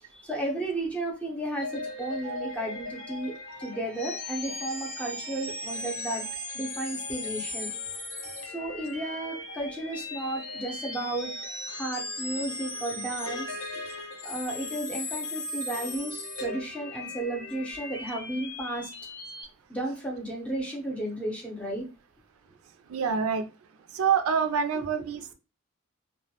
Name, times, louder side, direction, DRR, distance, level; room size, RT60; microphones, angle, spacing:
voice 1, 0.1-3.3 3.6-6.2 6.5-7.7 8.4-11.3 11.7-13.5 13.8-13.9 14.2-18.9 19.7-21.8 24.7-24.8, right 1 dB, 5° left, 0.6 m, -33 dB
sound 1, 1.5-19.4, left 2 dB, 65° left, 0.7 m, -37 dB
voice 2, 22.9-23.5 23.9-25.3, right 6 dB, 85° right, 0.4 m, -26 dB
2.2 x 2.1 x 2.8 m
head